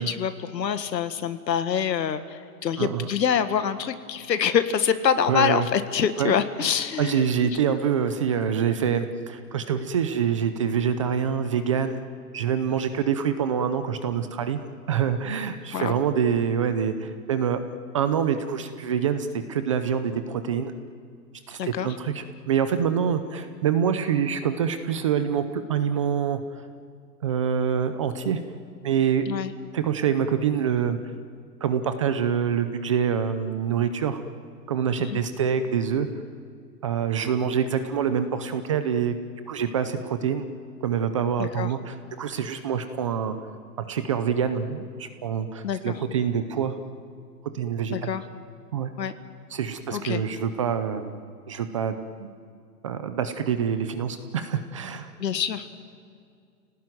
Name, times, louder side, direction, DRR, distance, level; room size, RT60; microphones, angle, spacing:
voice 1, 0.0-7.6 15.7-16.0 21.6-22.0 29.3-29.5 35.0-35.2 41.4-41.7 45.6-46.0 47.9-48.2 49.0-49.1 49.9-50.2 55.2-55.7, left 8 dB, 85° left, 10 dB, 1.9 m, -26 dB
voice 2, 2.8-3.1 5.3-5.7 6.2-6.3 7.0-12.0 12.3-14.6 14.9-17.6 17.9-20.7 21.5-26.4 27.2-28.4 28.8-29.3 29.7-31.0 31.6-34.2 34.7-36.1 36.8-39.1 39.5-40.5 40.8-43.4 43.8-46.8 47.5-48.1 48.7-48.9 49.5-51.2 51.5-52.3 52.8-55.1, right 7 dB, 20° right, 10 dB, 0.5 m, -26 dB
29.5 x 18.0 x 9.3 m, 2.2 s
hypercardioid pair, 160°, 49 cm